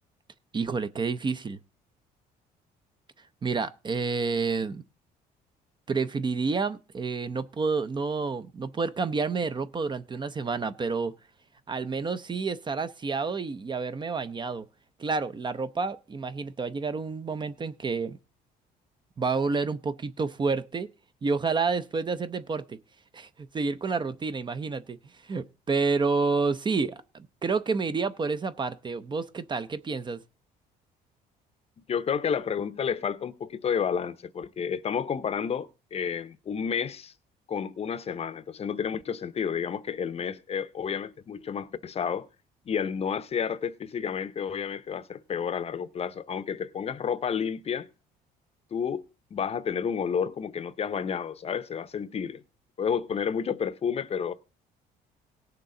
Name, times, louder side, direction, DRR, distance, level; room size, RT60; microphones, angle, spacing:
voice 1, 0.5-1.6 3.4-4.8 5.9-11.1 11.7-14.7 15.0-18.2 19.2-20.9 21.2-22.8 23.1-25.0 25.2-30.2, right 4 dB, 25° right, 0.6 m, -29 dB
voice 2, 31.9-37.1 37.5-42.3 42.7-47.9 48.7-49.0 49.3-52.4 52.8-54.3, left 7 dB, 35° left, 0.7 m, -30 dB
18.0 x 6.7 x 3.8 m
cardioid pair, 110°, 17 cm